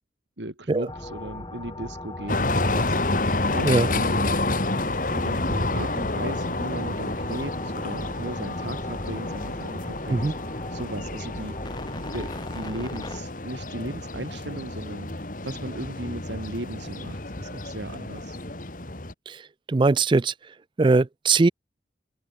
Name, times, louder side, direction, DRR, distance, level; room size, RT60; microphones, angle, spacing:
voice 1, 0.4-4.2 5.1-10.3 10.7-11.6 12.1-15.1 15.4-18.4, right 1 dB, 85° right, 4.2 m, -36 dB
sound 1, 0.9-13.2, left 1 dB, 25° left, 2.5 m, -39 dB
sound 2, 2.3-19.1, left 2 dB, 50° left, 2.7 m, -29 dB
voice 2, 19.7-20.3 20.8-21.5, right 3 dB, 25° right, 0.4 m, -20 dB
head